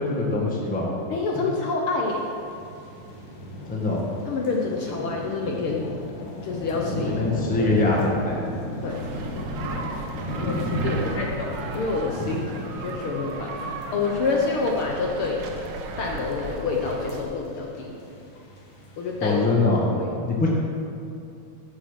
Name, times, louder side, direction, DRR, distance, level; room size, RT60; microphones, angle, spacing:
voice 1, 0.0-0.9 1.3-1.4 3.7-4.1 7.0-8.4 10.5-10.7 19.2-20.5, left 3 dB, 10° left, -3 dB, 0.5 m, -23 dB
voice 2, 1.1-2.3 4.3-5.8 6.4-7.2 7.6-7.7 8.8-9.1 10.3-13.6 13.9-15.4 16.0-17.9 19.0-19.4 19.9-20.1, left 4 dB, 70° left, 0 dB, 1.3 m, -27 dB
sound 1, 2.0-19.5, left 1 dB, 85° left, 3.3 m, -35 dB
sound 2, 8.9-17.2, right 3 dB, 65° right, 1.4 m, -36 dB
11.0 x 7.3 x 7.4 m, 2.6 s
omnidirectional pair, 3.5 m